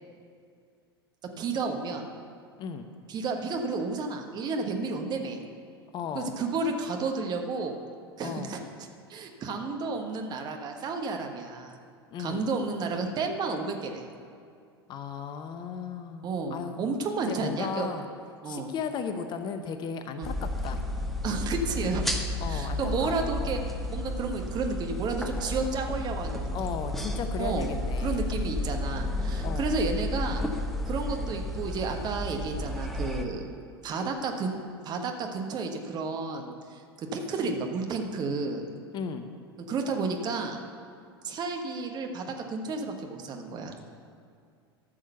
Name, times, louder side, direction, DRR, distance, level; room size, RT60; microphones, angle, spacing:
voice 1, 1.4-2.1 3.1-5.4 6.1-7.8 8.2-8.6 9.1-11.8 12.2-14.0 16.2-17.9 18.4-18.7 20.2-20.3 21.2-22.1 22.5-23.6 23.9-26.5 27.4-27.7 28.0-30.4 30.9-33.5 33.8-34.6 34.8-38.6 39.7-40.6 41.2-43.7, right 4 dB, 30° right, 3 dB, 1.3 m, -31 dB
voice 2, 5.9-6.3 8.2-8.5 12.1-12.5 14.9-16.9 17.3-18.1 18.5-20.8 22.4-23.3 26.5-28.3 29.4-29.7 38.9-39.3, left 6 dB, 35° left, 8 dB, 0.8 m, -36 dB
sound 1, 20.2-33.3, left 1 dB, ahead, 1.0 m, -32 dB
13.5 x 6.4 x 6.8 m, 2.3 s
figure-of-eight pair, 80°, 13 cm